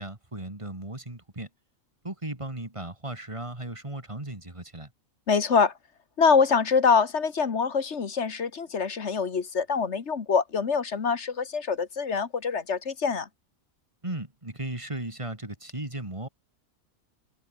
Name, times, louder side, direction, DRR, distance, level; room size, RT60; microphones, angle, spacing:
voice 1, 0.0-1.5 2.0-4.9 14.0-16.3, right 1 dB, 20° right, 3.0 m, -36 dB
voice 2, 5.3-5.7 6.2-13.3, left 5 dB, 55° left, 1.7 m, -24 dB
omnidirectional pair, 1.5 m